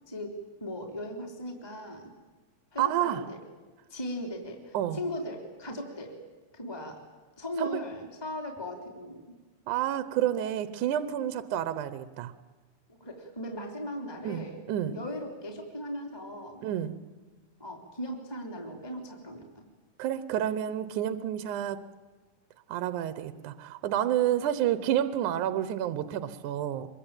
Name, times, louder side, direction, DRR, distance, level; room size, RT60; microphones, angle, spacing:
voice 1, 0.1-2.1 2.7-3.4 3.9-6.2 6.5-7.0 7.4-9.2 13.0-16.7 17.6-19.6, left 1 dB, 10° left, 2 dB, 3.0 m, -38 dB
voice 2, 2.8-3.2 4.7-5.0 7.6-7.8 9.7-12.3 14.2-15.0 16.6-17.0 20.0-21.9 22.7-26.9, right 11 dB, 75° right, 13 dB, 2.4 m, -29 dB
25.0 x 22.5 x 9.0 m, 1.3 s
omnidirectional pair, 3.6 m